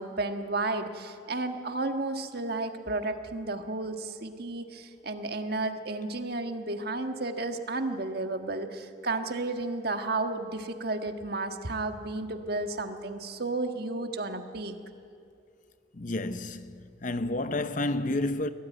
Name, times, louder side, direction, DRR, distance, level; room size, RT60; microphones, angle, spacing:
voice 1, 0.0-14.7, right 2 dB, 55° right, 1.5 m, -32 dB
voice 2, 15.9-18.5, left 2 dB, 45° left, 0.8 m, -30 dB
24.0 x 17.5 x 9.2 m
head